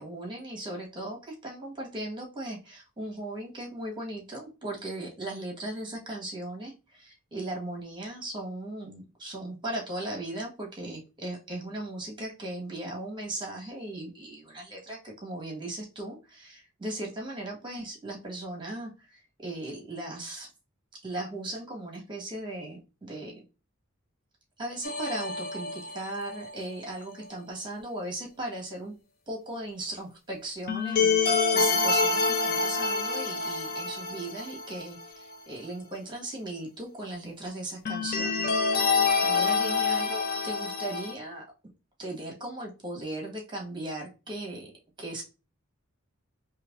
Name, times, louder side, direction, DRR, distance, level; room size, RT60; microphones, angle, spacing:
voice 1, 0.0-20.5 21.0-23.4 24.6-28.9 29.3-38.8 39.2-41.7 42.0-44.7 45.0-45.2, right 1 dB, 20° right, -1 dB, 1.5 m, -38 dB
sound 1, 24.8-26.7 30.7-35.0 35.3-35.4 37.9-41.1, left 4 dB, 45° left, 0.6 m, -27 dB
4.6 x 2.9 x 2.5 m, 0.30 s
head